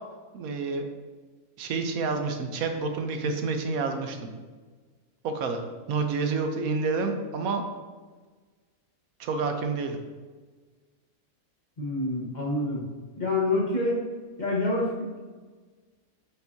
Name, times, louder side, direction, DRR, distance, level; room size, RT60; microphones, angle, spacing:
voice 1, 0.3-0.9 1.6-4.2 5.2-7.6 9.2-10.0, right 4 dB, 75° right, 5 dB, 1.2 m, -29 dB
voice 2, 11.8-12.8 13.2-14.0 14.4-15.2, left 2 dB, 30° left, -4 dB, 1.3 m, -27 dB
9.0 x 5.3 x 2.8 m, 1.4 s
omnidirectional pair, 1.5 m